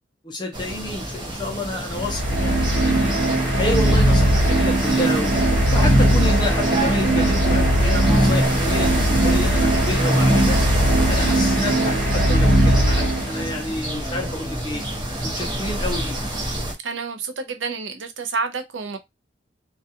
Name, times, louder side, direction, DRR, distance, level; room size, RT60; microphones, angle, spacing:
voice 1, 0.2-3.1 3.5-5.4 5.7-10.6 11.1-14.8 15.2-16.2, left 1 dB, 25° left, 0.5 m, -29 dB
sound 1, 0.5-16.7, right 1 dB, 25° right, 0.8 m, -29 dB
sound 2, 1.9-13.6, right 1 dB, 45° right, 1.1 m, -19 dB
voice 2, 16.8-19.0, right 4 dB, 75° right, 0.5 m, -29 dB
2.3 x 2.3 x 2.7 m
head